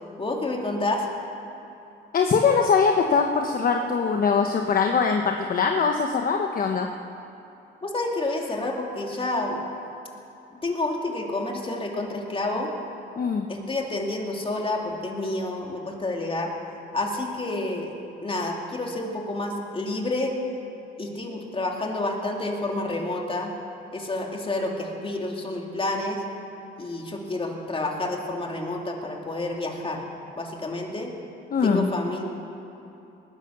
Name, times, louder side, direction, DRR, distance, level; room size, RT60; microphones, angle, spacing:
voice 1, 0.2-1.1 7.8-9.6 10.6-12.7 13.5-16.5 16.9-17.9 18.2-20.4 21.0-23.5 23.9-26.2 26.8-30.0 30.4-31.1 31.6-32.2, left 2 dB, 25° left, 0 dB, 2.6 m, -29 dB
voice 2, 2.1-6.9 13.2-13.5 31.5-31.9, left 5 dB, 45° left, 3 dB, 1.0 m, -22 dB
19.0 x 10.5 x 6.7 m, 2.9 s
cardioid pair, 90°, 20 cm